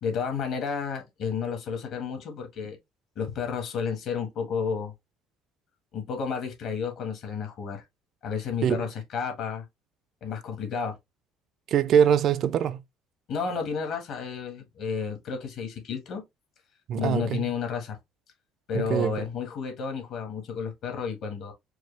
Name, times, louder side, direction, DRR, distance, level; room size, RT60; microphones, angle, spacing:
voice 1, 0.0-2.8 3.1-4.9 5.9-7.8 8.2-9.6 10.2-10.9 13.3-16.2 17.0-18.0 18.7-21.5, left 6 dB, 55° left, 1.4 m, -31 dB
voice 2, 11.7-12.8 16.9-17.5 18.7-19.2, right 8 dB, 50° right, 0.5 m, -23 dB
4.6 x 2.3 x 3.2 m
cardioid pair, 120°, 0 cm